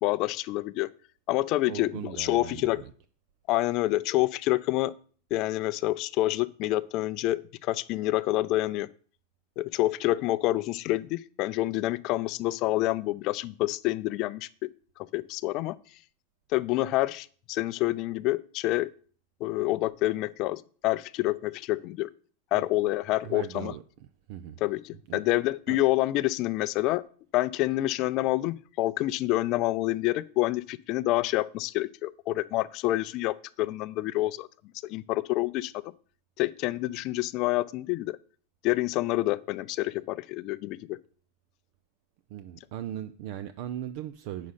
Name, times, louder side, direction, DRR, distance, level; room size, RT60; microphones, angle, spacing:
voice 1, 0.0-0.9 1.3-2.8 3.5-4.9 5.3-8.9 9.6-14.5 15.1-15.7 16.5-18.9 19.4-22.1 22.5-23.7 24.6-27.0 27.3-34.5 34.9-35.7 36.4-38.2 38.6-41.0, left 17 dB, 50° left, 16 dB, 0.5 m, -27 dB
voice 2, 1.7-2.9 22.5-22.7 23.2-24.6 25.1-25.2 25.7-25.8 42.3-44.5, right 11 dB, 60° right, 11 dB, 0.5 m, -39 dB
8.4 x 6.4 x 5.7 m, 0.43 s
hypercardioid pair, 115°, 0 cm